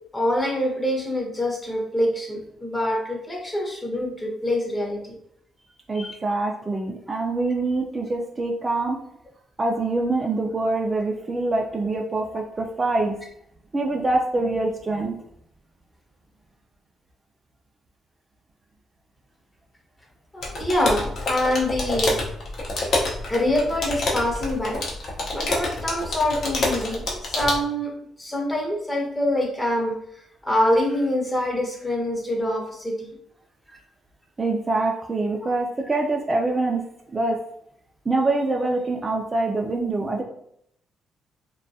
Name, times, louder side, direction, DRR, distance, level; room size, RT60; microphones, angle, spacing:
voice 1, 0.1-5.2 5.9-6.2 20.3-22.2 23.3-24.8 25.3-27.9 28.2-29.9 30.4-33.1 33.7-33.8, left 1 dB, 15° left, 0 dB, 0.7 m, -25 dB
voice 2, 5.9-9.0 9.6-13.2 13.7-15.2 34.4-36.8 37.1-37.4 38.1-40.2, right 2 dB, 25° right, 0 dB, 0.3 m, -24 dB
sound 1, 20.4-27.6, left 2 dB, 60° left, 0.7 m, -27 dB
2.2 x 2.2 x 2.6 m, 0.71 s
cardioid pair, 90°, 0 cm